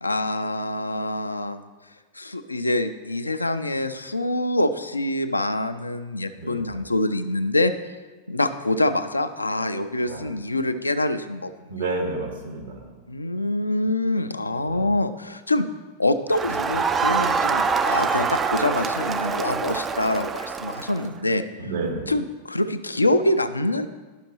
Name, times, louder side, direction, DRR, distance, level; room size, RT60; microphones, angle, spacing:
voice 1, 0.0-1.6 2.1-7.7 8.3-12.0 13.1-15.7 16.0-21.4 22.1-23.9, left 1 dB, 80° left, 10 dB, 0.4 m, -25 dB
voice 2, 6.4-6.8 10.1-10.2 11.7-12.9 14.6-14.9 21.6-22.1, right 3 dB, 70° right, -1 dB, 1.7 m, -30 dB
Crowd, 16.3-21.1, right 5 dB, 20° right, 0.3 m, -25 dB
11.0 x 5.8 x 2.9 m, 1.3 s
figure-of-eight pair, 90°, 0 cm